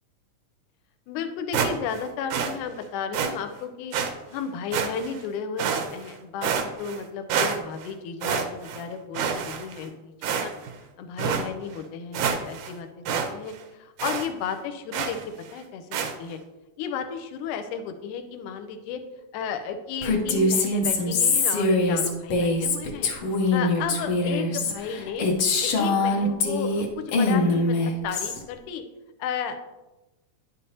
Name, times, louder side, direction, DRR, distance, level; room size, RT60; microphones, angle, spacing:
voice 1, 1.1-4.0 4.3-10.5 11.0-15.2 15.5-15.9 16.2-16.4 16.8-19.0 19.3-23.1 23.5-28.8 29.2-29.7, left 6 dB, 85° left, 7 dB, 2.2 m, -34 dB
sound 1, 1.5-2.0 2.3-2.5 3.1-3.3 3.9-4.1 4.7-5.2 5.6-6.1 6.4-7.0 7.3-7.9 8.2-8.8 9.1-9.8 10.2-10.7 11.2-11.4 11.8-11.9 12.1-12.7 13.1-13.3 13.5-13.6 14.0-14.3 14.9-15.2 15.9-16.1, right 7 dB, 85° right, 2.3 m, -27 dB
Female speech woman speaking, 20.0-26.9 27.1-28.4, left 3 dB, 65° left, 1.5 m, -23 dB
10.0 x 6.8 x 2.8 m, 1.0 s
omnidirectional pair, 3.6 m